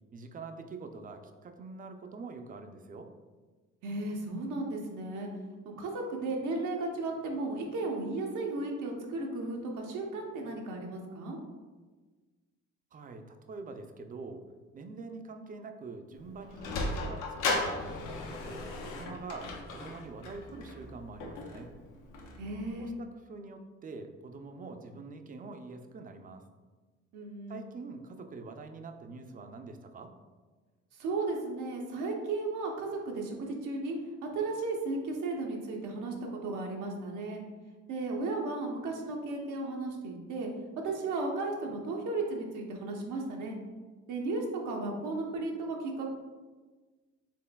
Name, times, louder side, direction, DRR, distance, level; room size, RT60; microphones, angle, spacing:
voice 1, 0.1-3.1 12.9-14.4 14.7-18.0 18.3-21.7 22.8-26.4 27.5-30.1, right 3 dB, 30° right, 6 dB, 0.3 m, -45 dB
voice 2, 3.8-5.3 5.6-11.4 22.4-22.9 27.1-27.6 30.9-34.0 34.2-36.1 36.4-37.4 37.9-40.5 40.8-43.6 44.1-46.1, right 3 dB, 80° right, 0 dB, 0.7 m, -35 dB
Sliding door, 16.1-22.7, left 2 dB, 85° left, 0.6 m, -37 dB
4.3 x 3.2 x 2.2 m, 1.3 s
cardioid pair, 90°, 30 cm